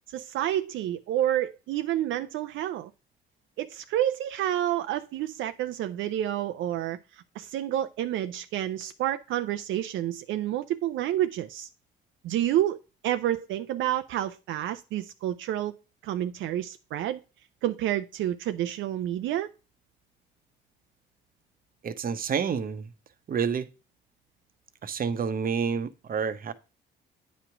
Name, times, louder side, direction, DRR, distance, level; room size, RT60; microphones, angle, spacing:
voice 1, 0.1-2.9 3.6-7.0 7.4-11.7 12.2-12.8 13.0-15.7 16.0-17.2 17.6-19.5, right 12 dB, 80° right, 0.4 m, -29 dB
voice 2, 21.8-22.9 23.3-23.7 24.8-26.5, right 6 dB, 45° right, 0.8 m, -29 dB
9.1 x 3.1 x 5.8 m
cardioid pair, 90°, 20 cm